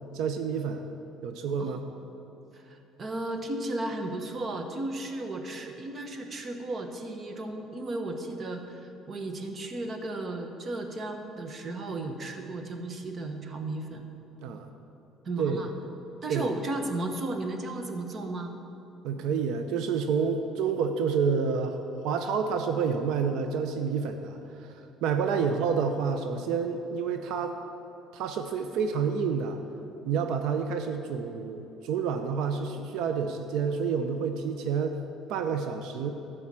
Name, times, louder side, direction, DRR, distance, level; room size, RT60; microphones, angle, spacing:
voice 1, 0.1-0.9 1.2-1.8 14.4-14.7 15.4-15.6 16.3-16.5 19.0-24.7 25.0-27.6 28.1-29.6 30.1-35.0 35.3-36.1, right 6 dB, 75° right, 7 dB, 0.6 m, -29 dB
voice 2, 2.5-14.0 15.2-15.7 16.2-18.5 25.4-25.5, right 2 dB, 30° right, 5 dB, 0.9 m, -34 dB
12.5 x 4.8 x 7.5 m, 3.0 s
cardioid pair, 140°, 0 cm